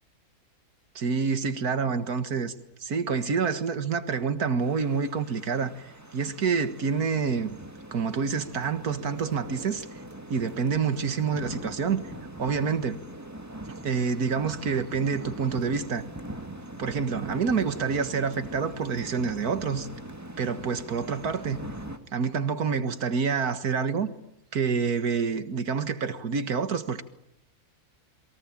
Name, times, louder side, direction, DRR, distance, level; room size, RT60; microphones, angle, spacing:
voice 1, 1.0-2.5 2.8-7.6 7.9-9.9 10.3-12.0 12.4-13.0 13.7-16.1 16.8-19.9 20.4-21.6 22.1-24.1 24.5-27.0, right 5 dB, 75° right, 2.1 m, -27 dB
sound 1, 4.6-22.0, right 1 dB, 10° right, 2.1 m, -41 dB
28.5 x 23.0 x 8.8 m
omnidirectional pair, 1.6 m